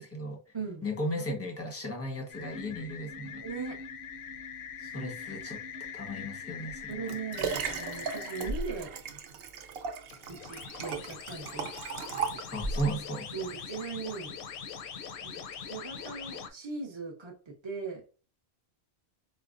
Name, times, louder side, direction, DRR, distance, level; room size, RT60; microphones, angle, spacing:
voice 1, 0.0-0.4 0.8-3.4 4.9-5.6 5.9-7.0 12.5-13.3, equal, 15° left, 0.8 m, -35 dB
sound 1, 2.3-8.5 10.1-16.5, left 6 dB, 65° left, 0.7 m, -42 dB
voice 2, 3.4-3.8 4.8-5.0 6.9-9.0 10.3-11.7 12.1-12.5 13.3-14.4 15.2-15.3 15.6-18.1, right 5 dB, 30° right, 0.7 m, -39 dB
Liquid, 6.7-12.9 13.6-13.7, right 5 dB, 70° right, 0.8 m, -36 dB
4.9 x 2.1 x 2.4 m
omnidirectional pair, 1.1 m